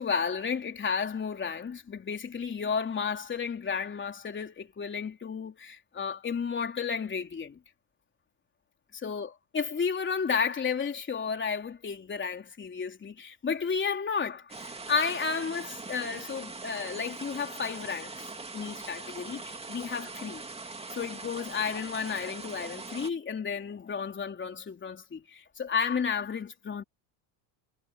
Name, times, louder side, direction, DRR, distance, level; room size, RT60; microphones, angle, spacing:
voice 1, 0.0-7.6 9.0-20.5 20.9-26.8, left 6 dB, 20° left, 3.8 m, -32 dB
sound 1, 14.5-23.1, right 3 dB, 10° right, 2.7 m, -42 dB
supercardioid pair, 115°, 50 cm